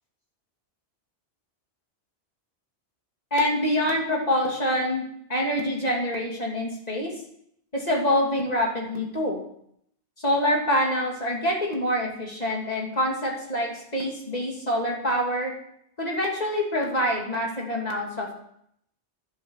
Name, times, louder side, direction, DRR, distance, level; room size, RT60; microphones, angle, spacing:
voice 1, 3.3-5.0 5.3-7.1 7.7-9.4 10.2-15.5 16.0-18.3, equal, 35° left, -1 dB, 3.0 m, -26 dB
11.5 x 8.4 x 6.5 m, 0.72 s
omnidirectional pair, 1.2 m